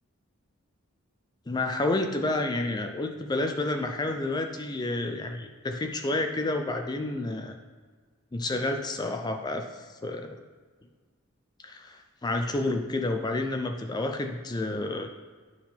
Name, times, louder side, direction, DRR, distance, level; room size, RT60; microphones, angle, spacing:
voice 1, 1.5-7.6 8.3-10.4 11.6-15.1, left 2 dB, 20° left, 5 dB, 0.4 m, -30 dB
9.4 x 3.6 x 4.4 m, 1.5 s
head